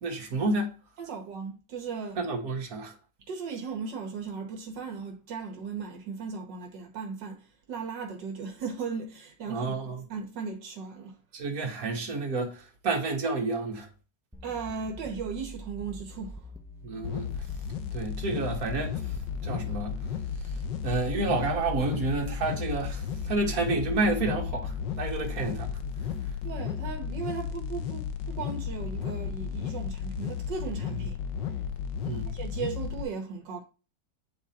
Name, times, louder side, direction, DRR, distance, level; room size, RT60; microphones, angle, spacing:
voice 1, 0.0-0.7 2.2-2.9 9.5-10.0 11.3-13.9 16.8-17.3 17.9-19.2 19.4-19.9 20.8-25.8 32.0-32.3, right 3 dB, 55° right, 2.0 m, -30 dB
voice 2, 1.0-2.2 3.3-11.2 14.4-16.5 26.4-31.2 32.3-33.6, right 5 dB, 85° right, 1.9 m, -37 dB
sound 1, 14.3-26.3, right 1 dB, 10° right, 0.4 m, -45 dB
sound 2, 17.0-33.0, left 7 dB, 85° left, 1.4 m, -34 dB
9.0 x 3.7 x 4.3 m
omnidirectional pair, 1.9 m